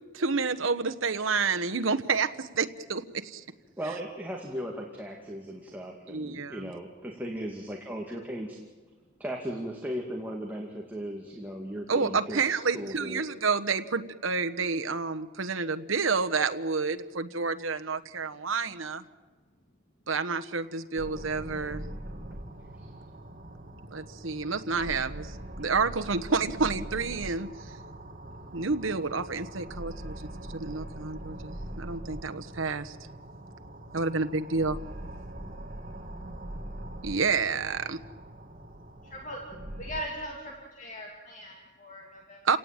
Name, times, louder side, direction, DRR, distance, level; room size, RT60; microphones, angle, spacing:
voice 1, 0.1-3.4 6.1-6.7 11.9-19.0 20.1-21.8 23.9-25.3 25.6-27.5 28.5-30.2 30.5-32.9 33.9-34.8 37.0-38.0 42.4-42.6, right 4 dB, 85° right, 8 dB, 1.2 m, -29 dB
voice 2, 3.8-8.6 9.2-13.2 22.8-22.9, equal, 10° right, 0 dB, 2.3 m, -37 dB
sound 1, 21.0-40.0, right 1 dB, 40° right, 2.6 m, -42 dB
voice 3, 39.1-39.4 39.8-40.5 40.8-42.6, equal, 40° left, 0 dB, 2.8 m, -39 dB
29.5 x 18.0 x 9.0 m, 1.5 s
head